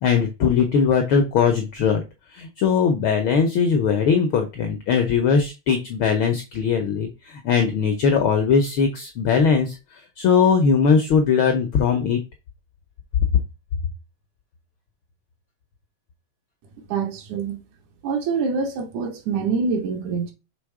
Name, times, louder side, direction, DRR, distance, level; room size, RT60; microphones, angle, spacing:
voice 1, 0.0-2.0 2.3-9.7 10.2-12.2, left 6 dB, 80° left, 1.1 m, -20 dB
voice 2, 16.9-17.6 18.0-20.3, right 5 dB, 85° right, 2.7 m, -25 dB
6.2 x 3.5 x 4.7 m
omnidirectional pair, 3.3 m